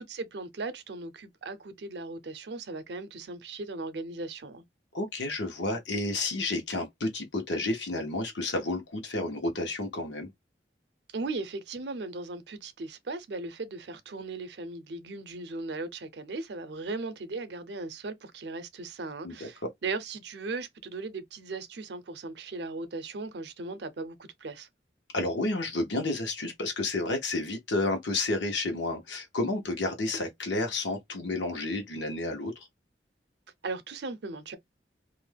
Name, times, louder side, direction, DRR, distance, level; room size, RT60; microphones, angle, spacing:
voice 1, 0.0-4.6 11.1-24.7 33.6-34.6, right 3 dB, 65° right, 0.5 m, -37 dB
voice 2, 4.9-10.3 19.2-19.7 25.1-32.7, left 2 dB, 85° left, 1.0 m, -31 dB
2.5 x 2.2 x 3.3 m
head